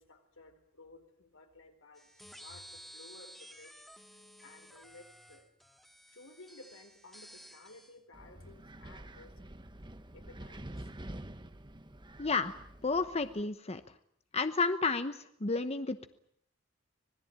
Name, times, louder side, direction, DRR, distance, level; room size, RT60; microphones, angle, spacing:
voice 1, 0.0-2.1 2.4-5.5 6.1-9.3 10.1-10.9, left 2 dB, 80° left, 6 dB, 4.5 m, -56 dB
sound 1, 2.0-8.0, equal, ahead, 2.1 m, -54 dB
Wind, 8.1-13.4, right 1 dB, 25° right, 1.2 m, -48 dB
voice 2, 12.2-12.5 12.8-13.8 14.3-16.1, left 4 dB, 30° left, 10 dB, 1.0 m, -31 dB
25.5 x 20.5 x 8.9 m, 0.68 s
head